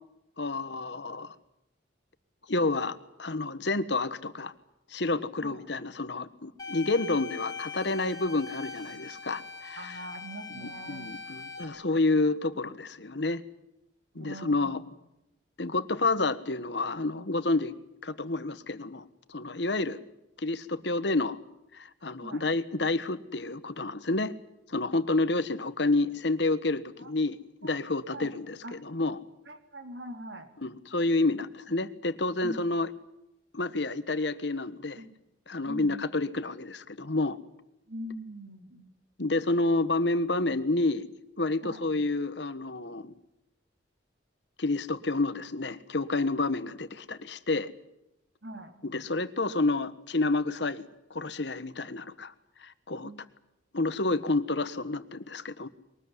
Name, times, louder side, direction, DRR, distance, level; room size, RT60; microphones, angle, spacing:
voice 1, 0.4-1.3 2.5-4.5 4.9-9.9 10.6-13.4 14.1-14.8 15.6-17.7 18.0-19.0 19.3-20.0 20.4-21.4 21.7-24.3 24.7-28.5 28.9-29.2 30.6-32.9 33.5-35.0 35.5-37.4 39.2-41.0 41.4-43.1 44.6-47.7 48.8-50.8 51.1-52.3 52.6-53.1 53.7-55.7, left 2 dB, 65° left, 13 dB, 1.3 m, -29 dB
sound 1, 6.6-11.6, left 5 dB, 20° left, 5.1 m, -41 dB
voice 2, 9.7-11.1 14.1-14.9 22.2-22.5 27.0-27.1 27.6-28.3 28.6-28.8 29.4-30.5 32.4-32.6 35.0-35.2 35.6-36.0 37.9-38.9 41.6-41.9 48.4-48.7 53.0-53.2, right 1 dB, 70° right, 6 dB, 3.5 m, -43 dB
22.5 x 19.5 x 9.8 m, 0.87 s
head